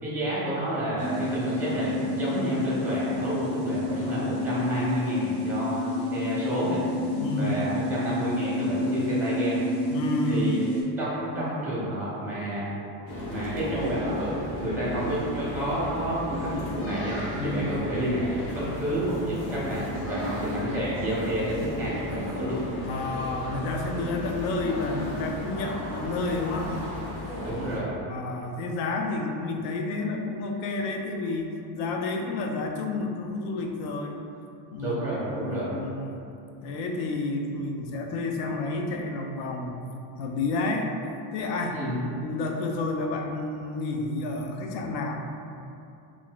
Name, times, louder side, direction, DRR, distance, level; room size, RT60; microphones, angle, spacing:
voice 1, 0.0-6.8 7.4-9.6 10.3-10.7 11.0-12.7 13.3-22.6 27.4-28.0 34.8-35.8 41.7-42.1, right 1 dB, 5° right, -8 dB, 0.6 m, -30 dB
sound 1, 1.0-10.8, left 1 dB, 30° left, 0.9 m, -29 dB
voice 2, 7.1-7.8 9.9-10.5 17.4-17.7 22.8-26.7 28.1-34.1 34.7-36.2 36.6-39.8 40.2-40.9 41.3-41.8 42.2-45.2, left 3 dB, 70° left, 2 dB, 0.5 m, -30 dB
sound 2, 13.1-27.8, left 1 dB, 90° left, 0.9 m, -34 dB
3.6 x 2.4 x 2.3 m, 2.6 s
cardioid pair, 165°, 41 cm